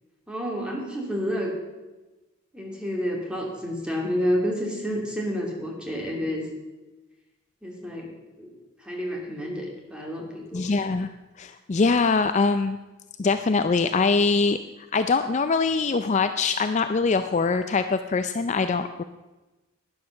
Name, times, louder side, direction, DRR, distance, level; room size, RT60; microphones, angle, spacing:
voice 1, 0.3-1.5 2.5-6.5 7.6-8.1 8.4-8.5 8.8-10.7, equal, 5° right, -1 dB, 2.7 m, -29 dB
voice 2, 10.5-11.1 11.4-12.8 13.2-14.6 14.9-19.0, left 4 dB, 35° left, 9 dB, 0.4 m, -23 dB
11.5 x 10.5 x 6.4 m, 1.1 s
head